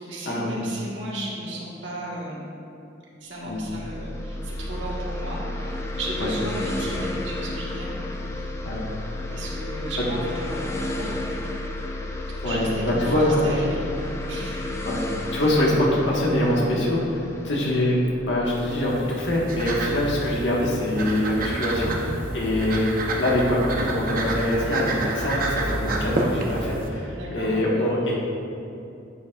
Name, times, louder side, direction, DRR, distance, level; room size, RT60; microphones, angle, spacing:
voice 1, 0.0-2.4 3.2-7.9 8.3-8.5 9.3-11.4 12.4-14.6 27.1-27.5, right 1 dB, 85° right, -5 dB, 1.7 m, -34 dB
sound 1, 3.5-19.0, left 1 dB, 15° left, 0.4 m, -32 dB
voice 2, 12.4-13.4 14.8-15.0 15.3-28.2, left 1 dB, 75° left, -5 dB, 1.6 m, -24 dB
sound 2, 18.4-26.9, right 2 dB, 50° right, 0.8 m, -29 dB
9.9 x 7.3 x 2.5 m, 2.7 s
head